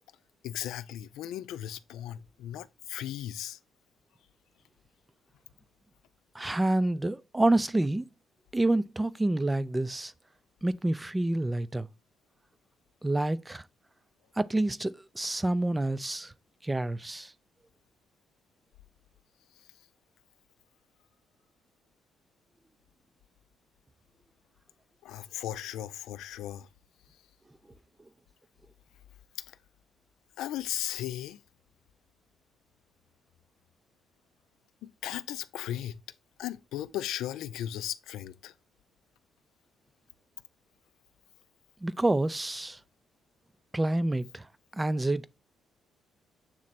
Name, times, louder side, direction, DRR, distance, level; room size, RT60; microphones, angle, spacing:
voice 1, 0.4-3.6 25.0-26.7 30.4-31.4 34.8-36.0 36.4-38.5, left 12 dB, 90° left, 0.4 m, -36 dB
voice 2, 6.3-8.0 8.5-10.1 10.6-11.9 13.0-13.6 14.4-16.3 16.6-17.3 41.8-42.8 43.7-44.4 44.7-45.3, right 2 dB, 15° right, 0.3 m, -28 dB
7.3 x 3.1 x 4.1 m
cardioid pair, 90°, 0 cm